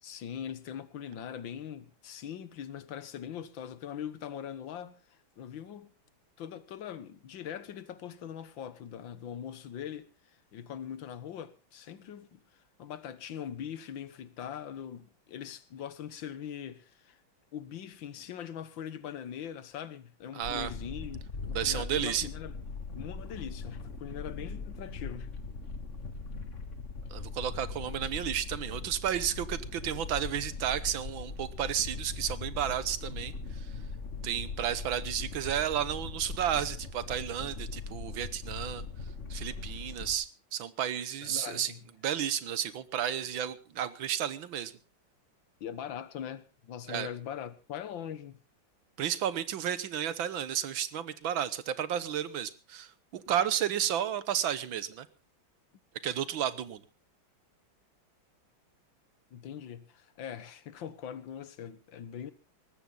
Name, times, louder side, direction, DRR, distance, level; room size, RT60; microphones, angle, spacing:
voice 1, 0.0-5.9 6.4-10.1 10.5-17.2 17.5-22.5 22.9-25.4 41.2-41.8 45.6-48.4 59.3-62.3, left 9 dB, 70° left, 1.8 m, -42 dB
voice 2, 20.3-20.7 21.5-22.3 27.1-33.7 34.2-38.8 39.3-41.7 42.0-44.7 46.9-47.1 49.0-55.1 56.0-56.8, right 10 dB, 75° right, 1.8 m, -32 dB
sound 1, 20.4-40.1, left 4 dB, 40° left, 1.8 m, -40 dB
19.5 x 14.5 x 3.9 m
omnidirectional pair, 2.2 m